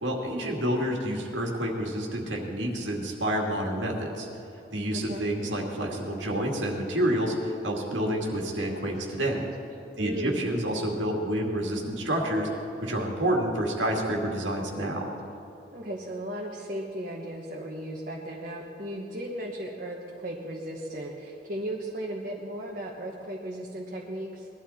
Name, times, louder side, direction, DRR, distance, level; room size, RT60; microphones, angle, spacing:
voice 1, 0.0-4.3 4.7-9.5 10.0-12.5 12.8-15.1, right 1 dB, 90° right, 0 dB, 2.3 m, -28 dB
voice 2, 4.9-5.3 10.0-10.4 15.7-24.5, right 1 dB, 45° right, -2 dB, 1.2 m, -36 dB
20.5 x 12.0 x 4.3 m, 2.8 s
head